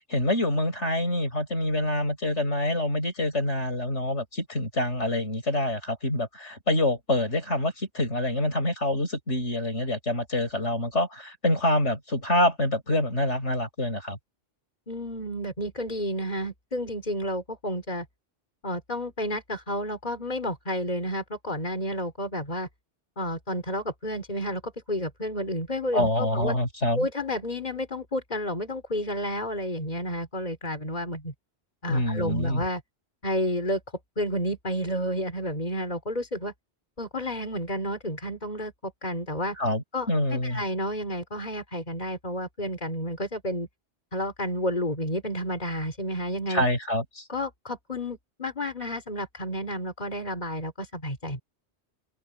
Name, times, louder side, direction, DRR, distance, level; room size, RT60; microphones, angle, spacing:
voice 1, 0.1-14.2 25.9-27.1 31.9-32.6 39.6-40.6 46.5-47.2, left 1 dB, 85° left, 7.3 m, -26 dB
voice 2, 14.9-18.1 18.6-22.7 23.2-26.6 26.9-31.3 31.8-32.8 33.2-33.8 34.2-36.5 37.0-39.6 39.9-43.7 44.1-46.6 47.3-51.4, equal, 40° left, 3.9 m, -31 dB
omnidirectional pair, 1.2 m